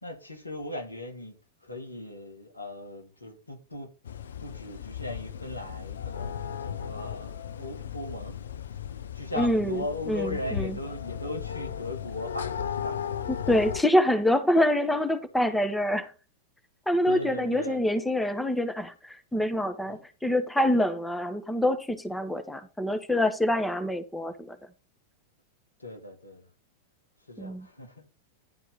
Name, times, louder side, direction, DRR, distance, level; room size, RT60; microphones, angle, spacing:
voice 1, 0.0-1.4 1.6-3.9 4.4-8.4 9.1-13.5 17.1-17.8 19.9-20.0 25.8-26.5 27.3-28.1, left 2 dB, 80° left, 2.2 m, -38 dB
sound 1, 4.0-13.8, left 8 dB, 65° left, 0.6 m, -36 dB
voice 2, 9.4-10.8 13.5-16.1 16.9-24.6 27.4-27.7, left 1 dB, 5° left, 1.1 m, -26 dB
11.0 x 4.4 x 5.4 m
figure-of-eight pair, 90°, 0 cm